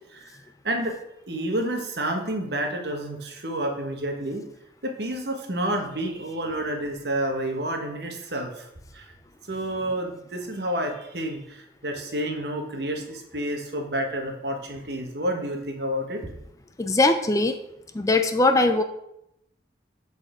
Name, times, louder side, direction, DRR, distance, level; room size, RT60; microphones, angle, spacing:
voice 1, 0.6-1.0 1.3-4.4 4.8-8.7 8.9-9.1 9.5-16.3, right 1 dB, 70° right, 3 dB, 1.2 m, -29 dB
voice 2, 16.8-17.6 17.9-18.8, left 2 dB, 20° left, 7 dB, 0.4 m, -20 dB
7.6 x 4.1 x 4.9 m, 0.80 s
head